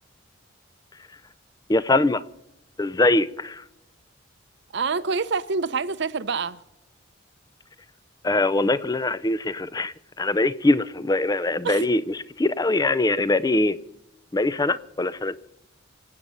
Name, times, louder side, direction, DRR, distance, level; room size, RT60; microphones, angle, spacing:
voice 1, 1.7-2.2 2.8-3.6 8.2-13.8 14.3-15.4, left 2 dB, 20° left, 0.5 m, -22 dB
voice 2, 4.7-6.6 11.6-11.9, right 4 dB, 60° right, 0.7 m, -26 dB
25.0 x 8.8 x 5.6 m
head